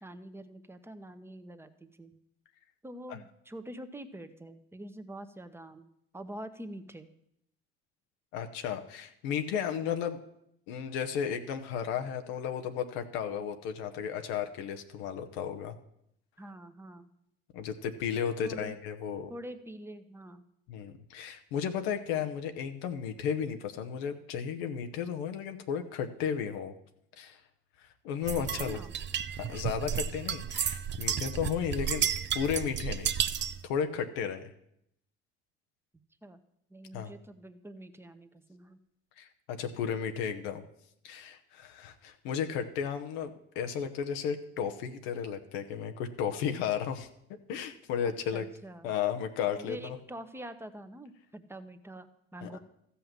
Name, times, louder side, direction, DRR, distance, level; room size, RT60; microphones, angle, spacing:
voice 1, 0.0-2.1 2.8-5.9 6.1-7.1 16.4-17.1 18.4-18.8 19.3-20.4 28.6-29.0 36.2-36.4 36.7-38.8 48.3-48.9 49.6-52.6, right 1 dB, 10° right, 9 dB, 1.1 m, -45 dB
voice 2, 8.3-10.2 10.7-15.8 17.5-19.3 20.7-26.7 27.2-27.4 27.8-28.8 29.4-32.0 32.3-33.1 33.6-34.5 36.9-37.1 39.2-40.6 41.0-47.1 47.5-48.5 48.8-50.0 52.4-52.6, left 8 dB, 80° left, 6 dB, 1.0 m, -34 dB
sound 1, 28.3-33.6, right 9 dB, 40° right, 0.6 m, -32 dB
13.5 x 5.7 x 7.5 m, 0.76 s
supercardioid pair, 75°, 30 cm